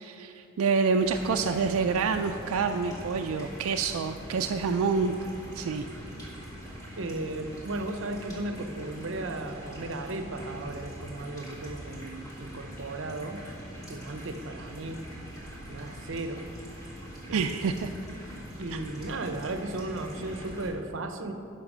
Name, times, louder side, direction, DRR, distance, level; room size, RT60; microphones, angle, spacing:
voice 1, 0.0-5.1 5.5-5.9 17.3-17.9 18.7-18.8, right 5 dB, 85° right, 5 dB, 0.4 m, -27 dB
sound 1, 1.0-20.7, equal, 15° left, 1.9 m, -43 dB
voice 2, 7.0-13.4 13.9-15.1 15.6-16.5 17.3-17.8 18.6-21.3, right 2 dB, 65° right, 7 dB, 0.7 m, -35 dB
10.5 x 5.8 x 6.1 m, 2.9 s
head